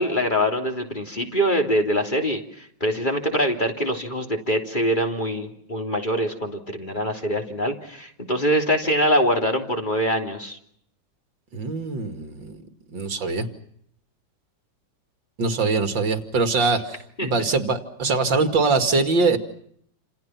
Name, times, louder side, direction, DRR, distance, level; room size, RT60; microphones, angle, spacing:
voice 1, 0.0-10.6 17.2-17.3, equal, 25° left, 4 dB, 3.4 m, -24 dB
voice 2, 11.5-12.6 12.9-13.5 15.4-19.4, right 3 dB, 70° right, 8 dB, 3.1 m, -23 dB
29.0 x 28.0 x 5.9 m, 0.67 s
omnidirectional pair, 2.1 m